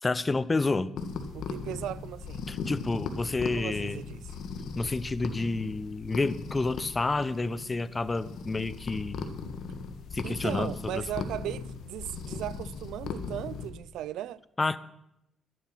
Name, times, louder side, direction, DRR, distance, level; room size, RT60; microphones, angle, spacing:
voice 1, 0.0-0.9 2.5-4.0 4.8-9.3 10.1-11.3 14.6-14.8, left 3 dB, 25° left, 0.6 m, -29 dB
sound 1, 1.0-13.7, left 5 dB, 75° left, 1.5 m, -38 dB
voice 2, 1.3-2.5 3.6-4.3 10.2-14.4, right 12 dB, 85° right, 0.3 m, -37 dB
11.5 x 11.0 x 5.8 m
cardioid pair, 90°, 0 cm